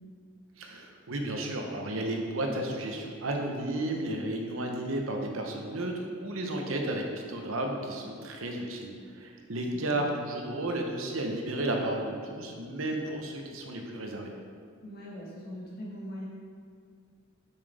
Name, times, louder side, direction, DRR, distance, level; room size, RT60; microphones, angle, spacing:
voice 1, 0.6-14.3, right 1 dB, 85° right, 2 dB, 0.9 m, -33 dB
voice 2, 9.7-10.0 14.8-16.3, equal, 50° left, -4 dB, 1.5 m, -41 dB
7.2 x 5.8 x 3.4 m, 2.1 s
head